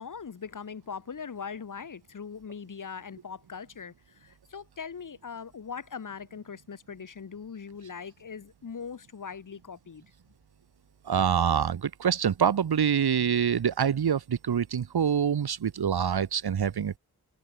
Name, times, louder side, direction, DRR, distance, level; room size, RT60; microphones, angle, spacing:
voice 1, 0.0-10.0, left 6 dB, 55° left, 1.1 m, -41 dB
voice 2, 11.1-17.0, right 8 dB, 75° right, 1.0 m, -25 dB
wide cardioid pair, 110°, 38 cm